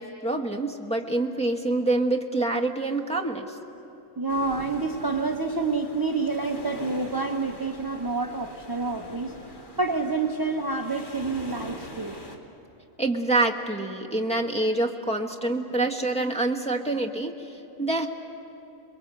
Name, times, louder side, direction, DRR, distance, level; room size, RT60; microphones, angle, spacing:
voice 1, 0.0-3.6 13.0-18.1, right 2 dB, 5° left, -1 dB, 1.4 m, -26 dB
voice 2, 4.2-9.3 9.8-12.2, right 3 dB, 20° right, 3 dB, 0.8 m, -28 dB
sound 1, 4.3-12.4, left 1 dB, 35° left, 2.1 m, -42 dB
28.0 x 21.5 x 8.1 m, 2.9 s
omnidirectional pair, 1.4 m